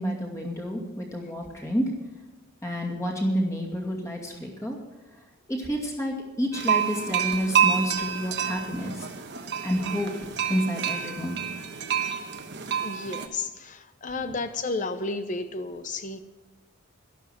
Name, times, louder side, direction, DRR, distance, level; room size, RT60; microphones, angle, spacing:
voice 1, 0.0-1.8 2.6-4.8 5.5-9.1 9.6-10.1 10.5-11.4, equal, 15° left, -1 dB, 2.4 m, -29 dB
sound 1, 6.5-13.3, right 8 dB, 50° right, 1.2 m, -28 dB
voice 2, 12.8-16.2, left 3 dB, 35° left, 10 dB, 0.7 m, -32 dB
12.0 x 12.0 x 5.9 m, 1.1 s
head